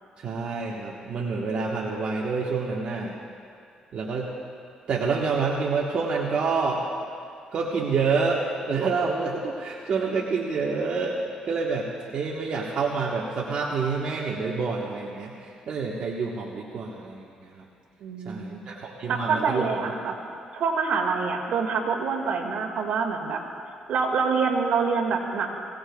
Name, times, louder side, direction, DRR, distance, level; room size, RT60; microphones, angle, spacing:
voice 1, 0.2-3.2 3.9-4.3 4.9-6.8 7.5-17.6 18.2-19.7, right 4 dB, 55° right, -4 dB, 1.3 m, -28 dB
voice 2, 18.0-18.6 19.1-20.1 20.5-23.4 23.9-25.5, right 5 dB, 75° right, 1 dB, 2.0 m, -26 dB
23.0 x 16.5 x 2.4 m, 2.4 s
cardioid pair, 100°, 2 cm